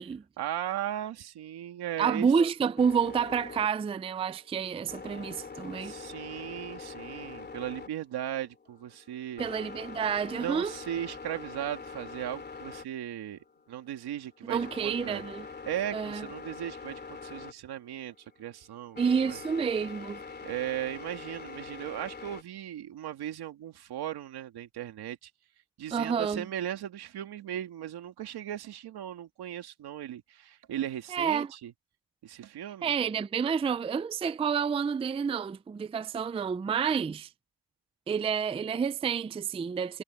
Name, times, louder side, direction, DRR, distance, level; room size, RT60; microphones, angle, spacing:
voice 1, 0.4-2.3 5.8-9.5 10.3-15.2 15.7-19.0 19.3-19.4 20.4-25.3 25.8-31.7 32.2-32.9, right 11 dB, 85° right, 2.4 m, -37 dB
voice 2, 2.0-5.9 9.4-10.7 14.4-15.5 15.9-16.3 19.0-20.2 25.9-26.5 31.1-31.5 32.8-37.3 38.1-40.0, right 6 dB, 15° right, 0.4 m, -29 dB
sound 1, 2.8-22.4, left 5 dB, 25° left, 3.0 m, -44 dB
cardioid pair, 135°, 38 cm